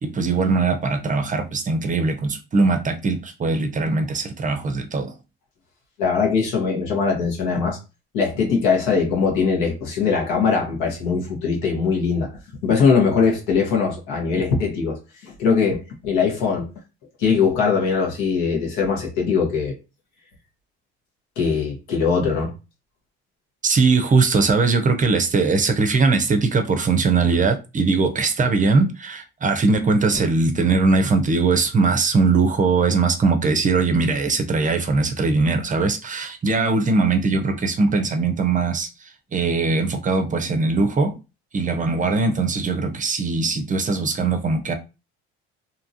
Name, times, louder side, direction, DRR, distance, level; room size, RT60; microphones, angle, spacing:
voice 1, 0.0-5.1 23.6-38.9 39.3-41.1 41.5-44.7, right 4 dB, 25° right, 0.5 m, -20 dB
voice 2, 6.0-7.8 8.1-12.3 12.6-15.0 15.2-16.7 17.2-19.7 21.4-22.5, left 5 dB, 80° left, 1.2 m, -21 dB
2.8 x 2.4 x 2.7 m
supercardioid pair, 85°, 29 cm